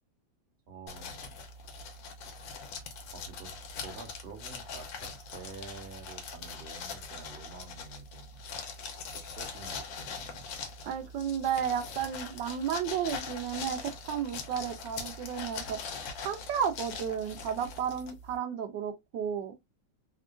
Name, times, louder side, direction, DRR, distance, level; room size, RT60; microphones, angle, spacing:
voice 1, 0.7-1.9 2.7-3.5 3.8-8.4 8.8-10.5, right 4 dB, 45° right, 0.9 m, -49 dB
sound 1, 0.9-18.4, left 4 dB, 80° left, 1.5 m, -42 dB
voice 2, 10.8-15.8 16.2-19.5, right 8 dB, 75° right, 1.2 m, -33 dB
3.6 x 2.3 x 2.4 m
omnidirectional pair, 2.1 m